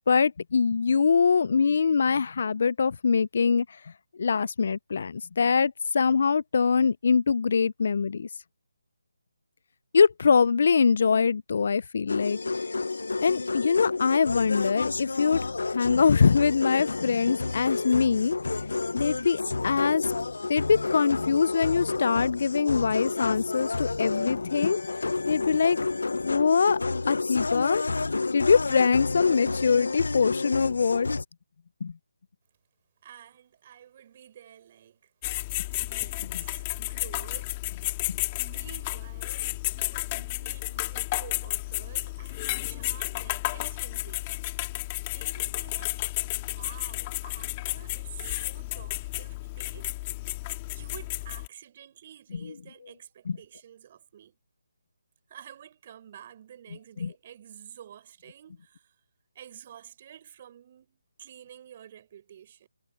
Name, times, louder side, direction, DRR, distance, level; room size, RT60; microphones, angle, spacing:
voice 1, 0.1-3.9 4.2-8.3 9.9-12.6 13.2-18.6 18.9-20.1 20.5-24.8 25.3-25.8 26.1-26.8 27.1-27.8 28.3-31.1 31.8-31.9 36.3-36.4 53.3-53.4 57.0-57.1, left 5 dB, 55° left, 0.5 m, -23 dB
sound 1, 12.1-31.2, left 3 dB, 75° left, 1.0 m, -30 dB
voice 2, 33.0-35.1 35.8-44.3 45.1-49.9 50.7-54.4 55.3-58.9 59.3-62.7, right 10 dB, 35° right, 6.5 m, -50 dB
sound 2, 35.2-51.5, left 20 dB, 25° left, 2.4 m, -32 dB
figure-of-eight pair, 155°, 0 cm